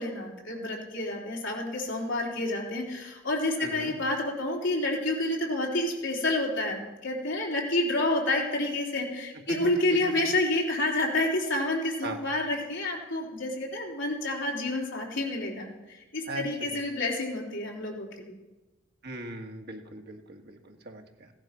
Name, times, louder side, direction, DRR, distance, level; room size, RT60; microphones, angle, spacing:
voice 1, 0.0-18.4, left 2 dB, 65° left, -1 dB, 3.7 m, -29 dB
voice 2, 3.6-3.9 12.0-12.2 16.3-16.4 16.7-16.8 19.0-21.3, right 2 dB, 55° right, 3 dB, 1.8 m, -40 dB
16.5 x 11.5 x 6.0 m, 1.1 s
head